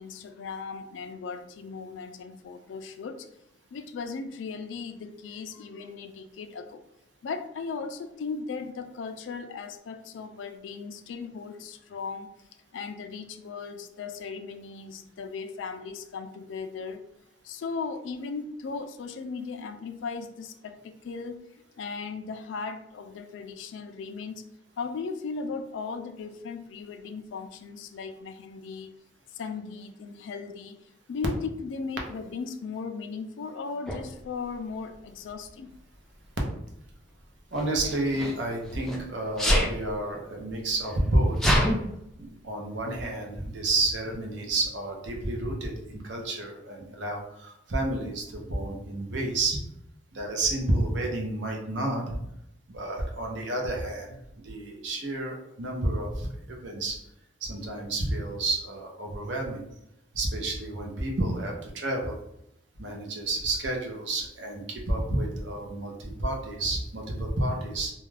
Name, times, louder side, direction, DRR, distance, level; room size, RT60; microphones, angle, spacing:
voice 1, 0.0-3.3 3.7-6.8 7.2-12.3 12.7-17.0 17.4-21.5 21.8-24.4 24.8-28.9 29.3-30.8 31.1-35.7, left 5 dB, 75° left, 8 dB, 0.3 m, -37 dB
Sneeze, 33.9-34.0 35.1-35.5 37.5-39.0 39.4-39.7 40.5-40.6 40.8-41.7, equal, ahead, 0.4 m, -26 dB
voice 2, 37.5-41.6 42.2-49.6 50.1-52.2 52.7-54.2 54.4-57.0 57.4-59.6 60.1-62.2 62.8-67.9, right 2 dB, 65° right, 1 dB, 0.6 m, -30 dB
2.4 x 2.2 x 3.2 m, 0.80 s
head